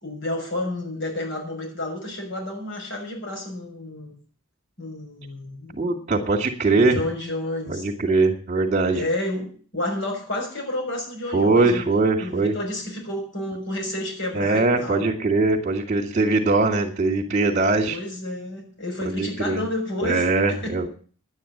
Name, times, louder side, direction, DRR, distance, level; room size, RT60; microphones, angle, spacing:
voice 1, 0.0-4.1 4.8-5.9 6.7-7.9 8.9-15.1 17.9-20.7, left 1 dB, 60° left, 2 dB, 6.4 m, -30 dB
voice 2, 5.8-7.0 7.7-9.0 11.3-12.5 14.3-18.0 19.1-19.6 20.0-20.9, right 3 dB, 35° right, -5 dB, 2.3 m, -21 dB
11.0 x 9.7 x 8.7 m, 0.43 s
head